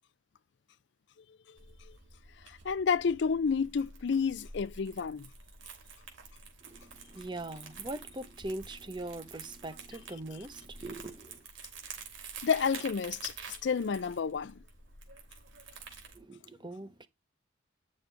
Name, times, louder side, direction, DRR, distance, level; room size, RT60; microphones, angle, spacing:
Crumpling crinkling, 1.6-16.2, right 5 dB, 80° right, 3.2 m, -49 dB
voice 1, 2.5-5.3 12.4-13.3 13.6-14.5, left 6 dB, 65° left, 0.4 m, -30 dB
voice 2, 6.6-11.5 16.1-17.1, right 2 dB, 25° right, 0.8 m, -42 dB
10.0 x 6.5 x 3.3 m
head